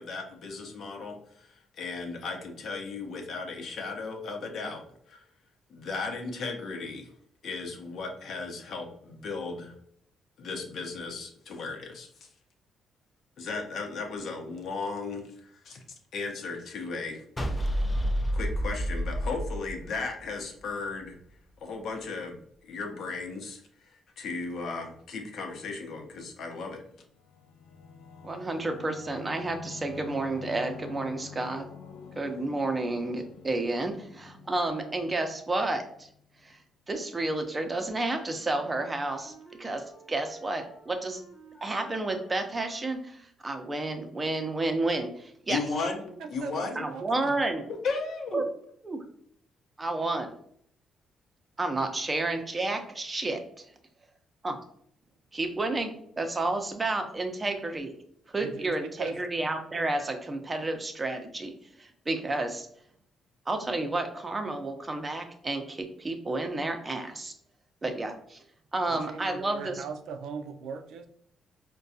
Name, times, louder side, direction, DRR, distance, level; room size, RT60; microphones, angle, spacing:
voice 1, 0.0-5.3 5.7-7.1 7.4-9.8 10.4-12.3 13.4-15.8 16.1-17.2 18.3-21.2 21.6-23.6 23.9-26.8 45.5-46.9 47.8-48.4, left 4 dB, 65° left, 3 dB, 0.7 m, -36 dB
sound 1, 17.4-20.6, equal, 20° left, 0.5 m, -29 dB
Singing / Musical instrument, 27.0-36.2, left 6 dB, 85° left, 0.3 m, -47 dB
voice 2, 28.2-31.7 32.1-36.1 36.4-36.6 36.9-41.2 41.6-45.6 46.8-47.6 48.3-48.4 48.8-49.0 49.8-50.3 51.6-53.7 54.4-54.6 55.3-57.9 58.3-62.7 63.5-67.3 67.8-68.4 68.7-69.8, right 2 dB, 25° right, 5 dB, 0.6 m, -31 dB
Wind instrument woodwind instrument, 38.3-43.3, right 1 dB, 40° left, 1.0 m, -53 dB
voice 3, 46.2-47.4 58.4-58.7 59.0-59.2 68.9-71.1, right 5 dB, 80° right, 6 dB, 0.4 m, -39 dB
4.6 x 2.2 x 2.6 m, 0.66 s
cardioid pair, 90°, 0 cm